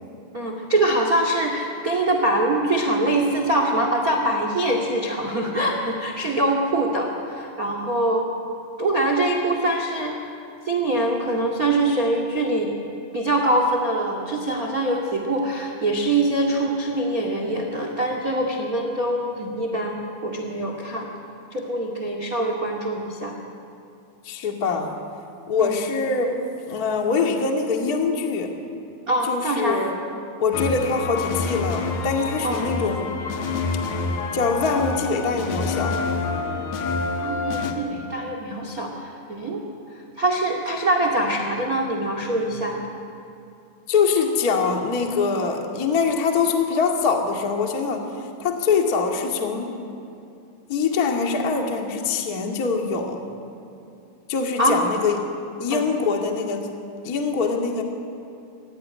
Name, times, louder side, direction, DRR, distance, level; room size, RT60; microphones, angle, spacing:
voice 1, 0.3-8.2 8.8-10.3 10.6-12.7 13.1-21.1 21.5-23.3 25.6-25.8 29.1-29.8 32.4-32.6 37.2-39.6 40.2-42.8 54.6-54.8 55.7-55.8, right 1 dB, 75° right, 3 dB, 0.8 m, -23 dB
voice 2, 24.2-24.9 25.5-28.5 29.3-30.0 30.4-33.1 34.3-36.0 43.9-48.1 48.4-49.7 50.7-53.2 54.3-55.2 55.6-56.7 57.0-57.8, left 5 dB, 90° left, 2 dB, 0.8 m, -23 dB
sound 1, 30.5-37.7, left 4 dB, 60° left, 3.1 m, -27 dB
26.5 x 15.5 x 9.9 m, 2.6 s
omnidirectional pair, 5.6 m